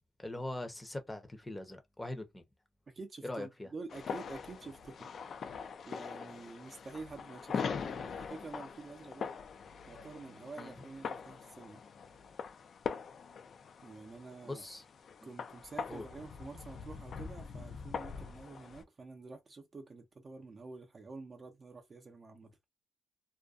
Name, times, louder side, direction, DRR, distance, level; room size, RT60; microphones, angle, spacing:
voice 1, 0.2-2.4 3.2-3.7 10.6-10.7 14.4-14.8 15.2-15.3 15.9-16.0, left 1 dB, 10° left, 0.7 m, -41 dB
voice 2, 2.9-5.1 5.9-9.3 9.9-11.8 13.8-14.7 15.2-22.5, right 3 dB, 30° right, 0.6 m, -48 dB
sound 1, 3.9-18.8, left 6 dB, 45° left, 0.4 m, -42 dB
2.4 x 2.2 x 2.3 m
cardioid pair, 100°, 0 cm